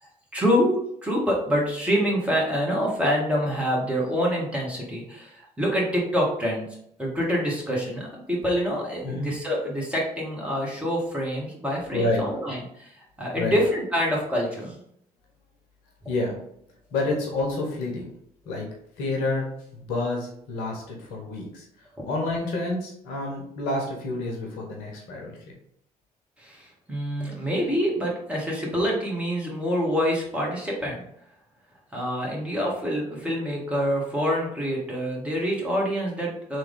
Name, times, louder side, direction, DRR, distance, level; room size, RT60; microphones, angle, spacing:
voice 1, 0.0-6.7 7.0-14.8 26.4-31.0 31.9-36.6, equal, 5° right, -3 dB, 1.4 m, -26 dB
voice 2, 11.9-12.2 13.4-13.6 16.1-16.3 16.9-18.1 18.5-18.7 19.0-19.5 19.7-21.7 22.0-25.4, left 2 dB, 65° left, 0 dB, 0.9 m, -28 dB
3.3 x 2.6 x 3.5 m, 0.71 s
figure-of-eight pair, 50°, 19 cm